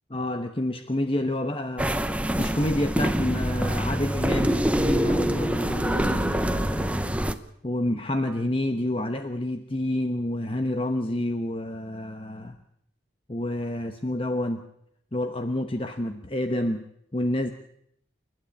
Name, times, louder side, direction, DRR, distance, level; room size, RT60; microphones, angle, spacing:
voice 1, 0.1-7.2 7.6-12.6 13.3-14.7 15.1-16.9 17.1-17.5, left 1 dB, 30° left, 7 dB, 1.0 m, -29 dB
sound 1, 1.8-7.4, right 1 dB, 5° right, 0.8 m, -25 dB
28.5 x 12.0 x 8.6 m, 0.75 s
head